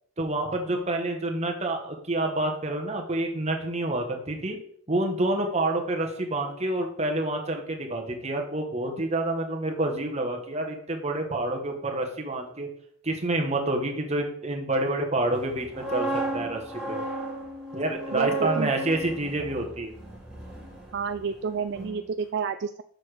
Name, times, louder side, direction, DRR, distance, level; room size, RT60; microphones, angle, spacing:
voice 1, 0.2-4.6 4.9-12.7 13.0-17.0 17.7-19.9, right 2 dB, 30° right, 2 dB, 1.3 m, -28 dB
sound 1, 15.5-21.4 21.7-22.0, right 2 dB, 5° right, 2.3 m, -34 dB
voice 2, 18.1-18.7 20.9-22.8, right 6 dB, 50° right, 9 dB, 0.3 m, -30 dB
6.9 x 6.5 x 5.0 m, 0.66 s
head